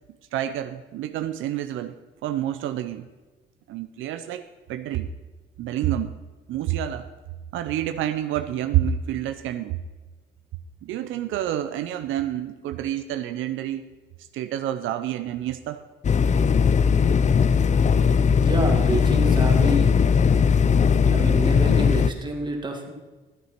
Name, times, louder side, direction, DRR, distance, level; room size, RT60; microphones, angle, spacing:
voice 1, 0.3-1.9 2.2-3.1 3.7-5.1 5.6-6.1 6.5-7.1 7.5-9.8 10.8-13.9 14.3-15.8, right 11 dB, 85° right, 9 dB, 0.6 m, -28 dB
sound 1, 16.0-22.1, left 6 dB, 35° left, 0.5 m, -19 dB
voice 2, 18.4-19.9 21.1-22.9, right 2 dB, 20° right, 2 dB, 2.4 m, -28 dB
12.0 x 8.2 x 5.9 m, 1.2 s
cardioid pair, 90°, 20 cm